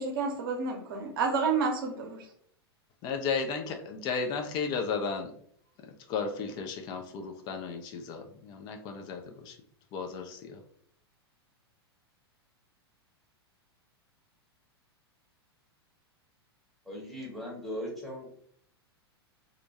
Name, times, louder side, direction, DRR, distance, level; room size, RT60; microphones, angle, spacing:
voice 1, 0.0-2.3, right 4 dB, 55° right, 2 dB, 0.7 m, -30 dB
voice 2, 3.0-5.3 5.8-9.5 9.9-10.6, left 5 dB, 35° left, 5 dB, 0.4 m, -34 dB
voice 3, 16.8-18.3, equal, ahead, -3 dB, 0.9 m, -38 dB
2.4 x 2.2 x 2.8 m, 0.63 s
figure-of-eight pair, 95°, 14 cm